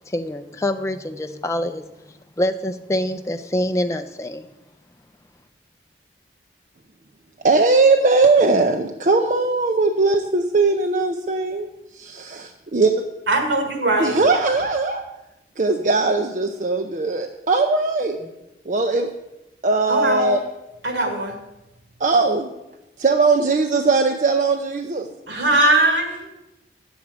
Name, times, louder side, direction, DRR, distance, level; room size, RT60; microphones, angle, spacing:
voice 1, 0.1-4.5, left 1 dB, 15° left, 6 dB, 0.4 m, -26 dB
voice 2, 7.4-11.7 11.9-12.9 14.0-15.0 15.6-18.2 18.7-19.1 19.6-20.4 22.0-22.5 23.0-25.1, right 3 dB, 45° right, 4 dB, 0.5 m, -19 dB
voice 3, 13.3-14.2 19.9-20.4 20.8-21.4 25.3-26.3, right 2 dB, 90° right, 4 dB, 1.8 m, -20 dB
9.2 x 7.1 x 4.8 m, 0.93 s
head